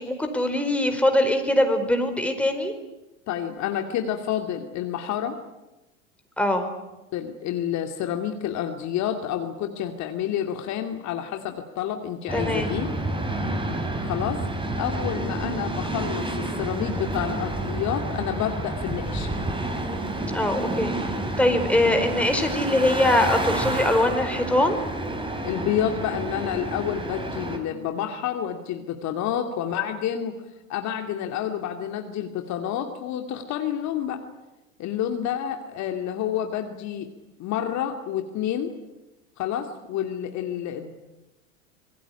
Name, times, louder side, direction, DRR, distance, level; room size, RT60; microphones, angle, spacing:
voice 1, 0.0-2.7 6.4-6.7 12.3-12.7 20.3-20.9 21.4-24.8, left 1 dB, 5° left, 5 dB, 4.5 m, -22 dB
voice 2, 3.3-5.4 7.1-12.9 14.0-14.4 14.8-19.3 25.4-30.4 30.7-34.2 34.8-37.1 37.4-38.7 39.4-40.9, left 10 dB, 45° left, 5 dB, 2.5 m, -29 dB
sound 1, 12.3-27.6, right 1 dB, 10° right, 4.4 m, -29 dB
26.0 x 20.0 x 10.0 m, 1.0 s
hypercardioid pair, 90°, 40 cm